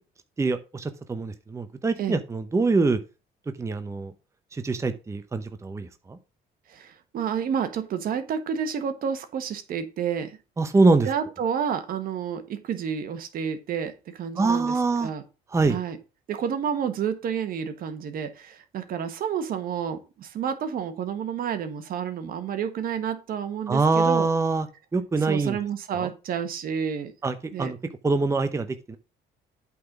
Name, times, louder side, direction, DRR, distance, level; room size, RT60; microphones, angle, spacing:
voice 1, 0.4-3.0 3.6-4.1 4.5-6.2 10.6-11.1 14.4-15.1 15.5-15.8 23.7-24.7 24.9-25.6 25.9-26.1 27.2-27.8 28.0-29.0, right 3 dB, 15° right, 9 dB, 0.7 m, -24 dB
voice 2, 6.7-10.4 11.0-14.8 15.0-15.2 15.7-16.0 16.3-24.3 25.2-27.1 27.5-27.7, right 7 dB, 60° right, 9 dB, 1.3 m, -30 dB
8.4 x 4.0 x 5.9 m, 0.31 s
cardioid pair, 110°, 17 cm